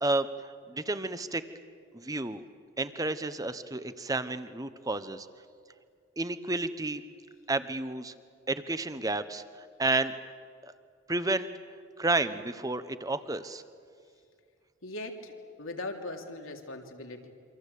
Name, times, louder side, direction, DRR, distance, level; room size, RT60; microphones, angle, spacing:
voice 1, 0.0-1.4 1.9-2.4 2.8-5.3 6.2-7.0 7.5-8.1 8.5-9.4 9.8-10.2 11.1-11.5 12.0-13.6, right 2 dB, 15° right, 12 dB, 1.0 m, -31 dB
voice 2, 14.8-17.3, left 2 dB, 85° left, 3 dB, 3.2 m, -40 dB
27.5 x 25.5 x 8.4 m, 2.3 s
head